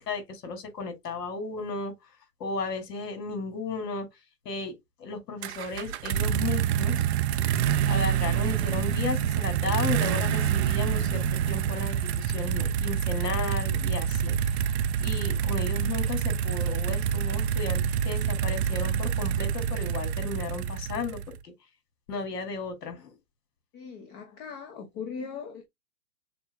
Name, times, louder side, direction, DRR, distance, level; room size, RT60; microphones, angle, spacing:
voice 1, 0.1-1.9 2.4-4.1 4.4-4.7 5.0-7.0 7.9-14.7 15.0-21.5 22.1-23.1, left 4 dB, 70° left, 2.8 m, -34 dB
sound 1, 5.4-21.4, right 8 dB, 45° right, 0.5 m, -27 dB
voice 2, 23.7-25.7, left 6 dB, 30° left, 1.0 m, -39 dB
7.0 x 2.8 x 2.3 m
hypercardioid pair, 130°, 49 cm